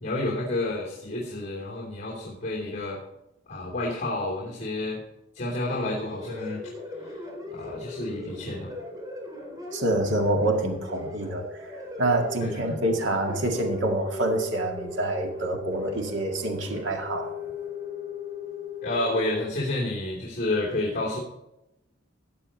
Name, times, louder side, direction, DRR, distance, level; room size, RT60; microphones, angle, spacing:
voice 1, 0.0-3.0 3.5-5.0 5.3-6.6 7.0-7.2 7.5-8.7 12.4-12.8 18.8-21.2, left 2 dB, 40° left, -3 dB, 3.0 m, -30 dB
sound 1, 5.7-19.4, left 2 dB, 20° right, 3.7 m, -38 dB
voice 2, 9.7-11.5 12.0-17.3, right 1 dB, 75° right, 2 dB, 2.0 m, -26 dB
15.5 x 8.8 x 4.4 m, 0.88 s
head